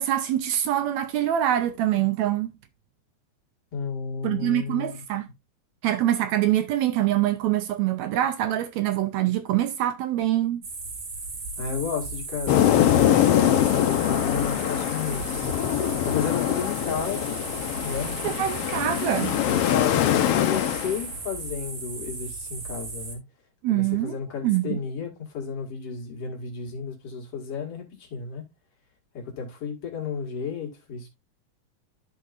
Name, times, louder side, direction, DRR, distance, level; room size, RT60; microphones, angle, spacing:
voice 1, 0.0-2.5 4.2-5.3 5.8-10.6 18.2-19.4 23.6-24.2 24.4-24.8, right 12 dB, 75° right, 1.8 m, -24 dB
voice 2, 3.7-5.0 11.6-17.4 17.8-18.5 19.5-23.2 23.7-28.5 29.1-31.1, left 6 dB, 50° left, 2.8 m, -33 dB
sound 1, 10.6-23.2, right 3 dB, 45° right, 2.3 m, -36 dB
sound 2, 12.5-21.0, left 11 dB, 75° left, 1.4 m, -23 dB
13.0 x 4.7 x 2.4 m
omnidirectional pair, 3.5 m